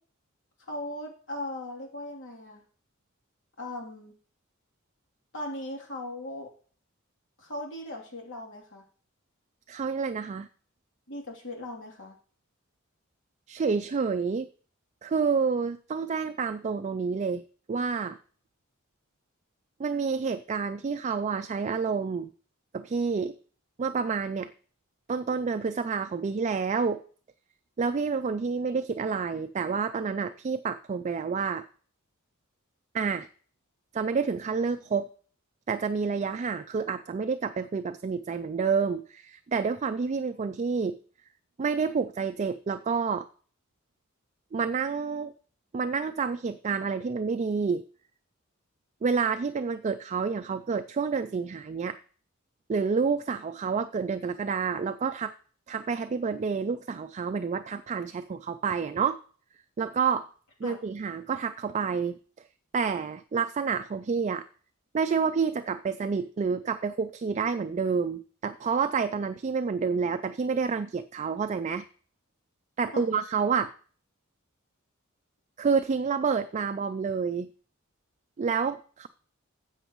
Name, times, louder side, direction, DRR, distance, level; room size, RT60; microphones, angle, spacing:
voice 1, 0.6-2.6 3.6-4.1 5.3-6.5 7.4-8.8 11.1-12.1 60.6-60.8 72.9-73.1, left 1 dB, 65° left, 0 dB, 3.0 m, -38 dB
voice 2, 9.7-10.5 13.5-14.5 15.0-17.4 17.7-18.2 19.8-22.3 22.7-23.3 23.8-24.5 25.1-27.0 27.8-31.6 32.9-33.3 33.9-35.1 35.7-41.0 41.6-43.3 44.5-45.3 45.7-47.8 49.0-52.0 52.7-55.3 55.7-59.2 59.8-60.3 60.6-62.2 62.7-64.4 64.9-71.8 72.8-73.7 75.6-77.5 78.4-79.1, right 5 dB, 35° right, 9 dB, 0.4 m, -29 dB
13.0 x 8.0 x 3.0 m, 0.44 s
head